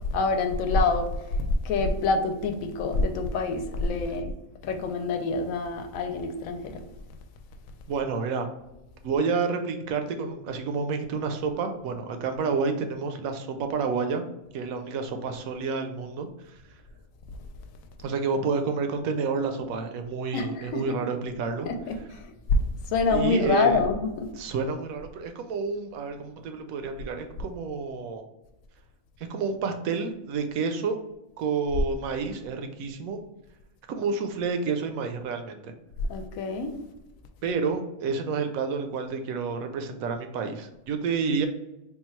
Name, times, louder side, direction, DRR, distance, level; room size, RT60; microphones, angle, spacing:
voice 1, 0.1-1.1 1.4-4.3 4.6-6.8 20.3-21.0 21.6-22.6 22.9-24.3 36.1-36.7, left 3 dB, 80° left, 5 dB, 1.0 m, -26 dB
voice 2, 7.9-8.5 9.0-14.3 14.5-16.6 18.0-21.7 23.1-23.8 24.4-28.2 29.3-31.0 31.4-33.2 33.9-35.6 37.4-41.5, right 4 dB, 85° right, 6 dB, 1.0 m, -29 dB
3.7 x 2.3 x 4.3 m, 0.95 s
omnidirectional pair, 1.4 m